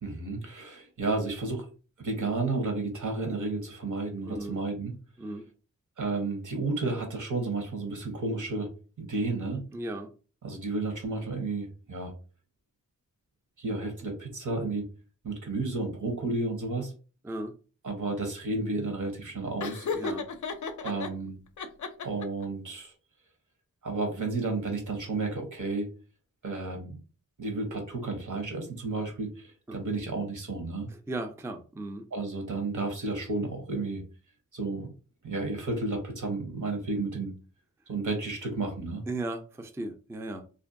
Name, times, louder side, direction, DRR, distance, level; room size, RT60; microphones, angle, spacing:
voice 1, 0.0-1.6 2.0-4.9 6.0-8.7 9.0-9.6 10.4-12.1 13.6-14.8 15.2-16.9 17.8-19.9 20.8-21.4 22.0-22.9 23.8-25.9 26.4-27.0 27.4-30.9 32.1-34.0 34.5-34.9 35.2-37.3 37.9-39.0, right 3 dB, 70° right, 4 dB, 0.9 m, -32 dB
voice 2, 4.2-4.6 5.2-5.5 9.7-10.1 17.2-17.6 19.9-20.3 30.9-32.1 39.1-40.5, right 2 dB, 10° right, 5 dB, 0.3 m, -36 dB
Laughter, 19.6-21.1 21.6-22.5, left 4 dB, 65° left, 0.4 m, -34 dB
2.5 x 2.2 x 2.5 m, 0.36 s
cardioid pair, 50°, 32 cm